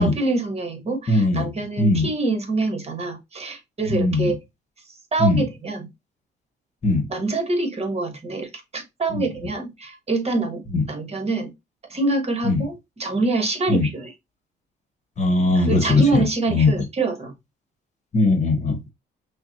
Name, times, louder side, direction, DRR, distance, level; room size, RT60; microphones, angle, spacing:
voice 1, 0.0-4.4 5.1-5.9 7.1-10.6 10.9-11.5 11.9-14.1 15.5-17.3, right 3 dB, 30° right, 1.3 m, -25 dB
voice 2, 1.1-1.5 1.8-2.1 3.8-4.3 5.2-5.4 6.8-7.1 9.1-9.2 10.7-10.8 12.4-12.6 13.7-13.9 15.2-16.7 18.1-18.9, left 2 dB, 35° left, 1.2 m, -20 dB
5.8 x 2.2 x 2.8 m
cardioid pair, 90°, 20 cm